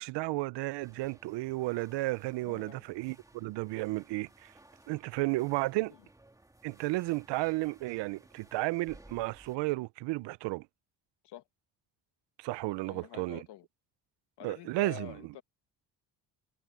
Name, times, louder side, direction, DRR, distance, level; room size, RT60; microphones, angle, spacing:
voice 1, 0.0-4.5 4.9-5.9 6.6-10.7 12.4-13.4 14.4-15.1, right 21 dB, 85° right, 0.6 m, -33 dB
sound 1, 0.8-9.6, right 1 dB, 10° right, 2.8 m, -59 dB
voice 2, 2.4-2.8 11.2-11.4 12.8-13.6 14.4-15.4, left 14 dB, 70° left, 1.5 m, -47 dB
cardioid pair, 125°, 41 cm